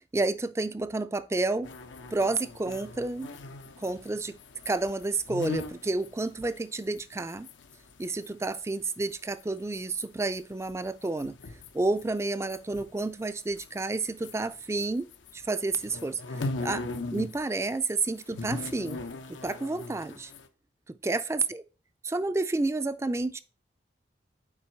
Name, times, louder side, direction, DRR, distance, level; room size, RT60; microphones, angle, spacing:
voice 1, 0.1-1.7 2.1-3.3 3.8-4.4 4.7-7.5 8.0-11.4 11.7-16.9 17.1-19.0 19.3-20.3 20.9-21.6 22.1-23.4, right 3 dB, 15° right, 0.3 m, -30 dB
sound 1, 1.6-8.6 8.9-14.9 15.1-17.4 17.6-20.5, left 3 dB, 90° left, 0.8 m, -39 dB
7.3 x 4.7 x 4.4 m
head